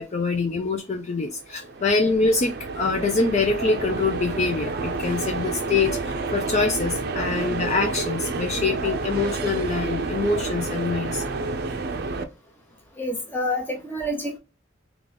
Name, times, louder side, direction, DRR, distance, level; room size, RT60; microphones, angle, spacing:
voice 1, 0.0-11.3, left 3 dB, 35° left, 0.4 m, -25 dB
sound 1, 1.4-12.2, right 3 dB, 55° right, 0.5 m, -29 dB
voice 2, 13.0-14.4, left 1 dB, 10° left, 0.9 m, -28 dB
3.7 x 2.4 x 3.3 m
head